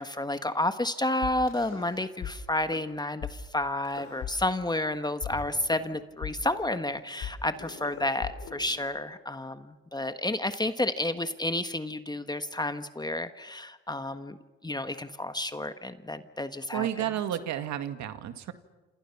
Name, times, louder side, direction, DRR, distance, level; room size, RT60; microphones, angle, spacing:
voice 1, 0.0-14.4 14.6-16.9, left 1 dB, 15° left, 10 dB, 1.4 m, -31 dB
sound 1, 1.2-2.3 2.6-2.8 3.2-3.3 3.8-4.9 5.2-9.2, left 8 dB, 70° left, 5.4 m, -40 dB
voice 2, 16.7-18.5, right 11 dB, 70° right, 8 dB, 2.1 m, -31 dB
28.0 x 27.5 x 5.9 m, 1.2 s
supercardioid pair, 75°, 29 cm